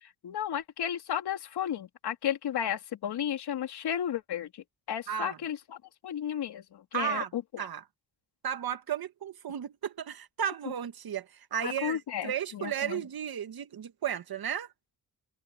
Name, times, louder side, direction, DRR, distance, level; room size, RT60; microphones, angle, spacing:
voice 1, 0.0-5.8 6.0-7.6 11.6-13.0, left 9 dB, 85° left, 3.3 m, -34 dB
voice 2, 5.1-5.4 6.9-7.3 7.6-7.8 8.4-14.7, right 9 dB, 70° right, 1.8 m, -34 dB
open air
cardioid pair, 60°, 38 cm